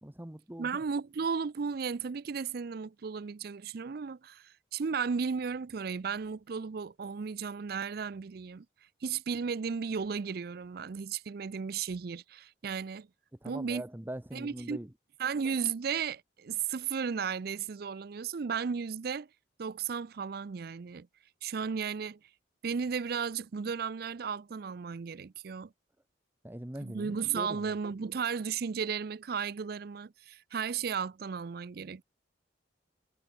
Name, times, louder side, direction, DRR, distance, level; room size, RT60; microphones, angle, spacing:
voice 1, 0.0-0.8 13.4-14.9 26.4-27.8, right 1 dB, 10° right, 0.8 m, -42 dB
voice 2, 0.6-8.7 9.0-13.1 13.4-13.8 14.3-14.8 15.2-19.3 19.6-21.1 21.4-22.2 22.6-25.7 26.8-32.0, right 6 dB, 55° right, 0.4 m, -34 dB
head